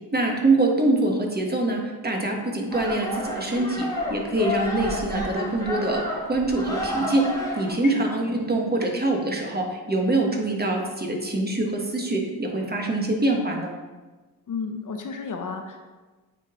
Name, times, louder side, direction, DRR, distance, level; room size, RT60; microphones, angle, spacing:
voice 1, 0.1-7.3 7.6-13.7, right 2 dB, 25° right, 0 dB, 1.4 m, -24 dB
sound 1, 2.7-7.7, left 1 dB, 10° left, 1.6 m, -30 dB
voice 2, 7.8-8.2 14.5-15.9, left 5 dB, 55° left, 4 dB, 0.8 m, -33 dB
9.0 x 3.1 x 3.7 m, 1.3 s
supercardioid pair, 50°, 38 cm